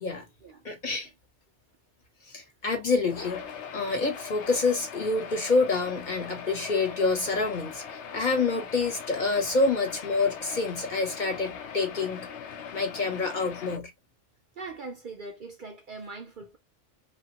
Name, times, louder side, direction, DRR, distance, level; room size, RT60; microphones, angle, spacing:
voice 1, 0.6-1.1 2.3-7.8 8.1-12.3 12.7-13.9, left 3 dB, 45° left, 1.0 m, -27 dB
sound 1, 3.0-13.8, left 7 dB, 75° left, 0.9 m, -40 dB
voice 2, 14.6-16.6, right 3 dB, 55° right, 0.6 m, -41 dB
2.9 x 2.4 x 2.8 m
omnidirectional pair, 1.2 m